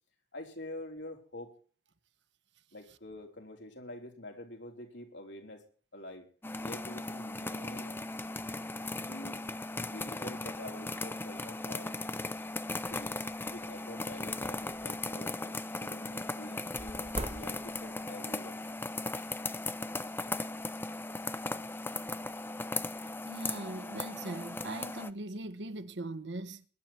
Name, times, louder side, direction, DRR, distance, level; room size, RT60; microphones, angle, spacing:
voice 1, 0.3-1.6 2.7-5.7 5.9-6.3 6.6-8.0 9.0-9.4 9.8-12.2 12.9-13.2 13.5-18.6, left 1 dB, 85° left, 4.2 m, -47 dB
sound 1, 6.4-25.1, left 2 dB, 10° left, 0.6 m, -38 dB
sound 2, 14.1-15.1 16.8-18.0, right 1 dB, 40° right, 1.6 m, -43 dB
voice 2, 23.2-26.7, right 2 dB, 75° right, 1.2 m, -40 dB
21.5 x 11.0 x 4.4 m
head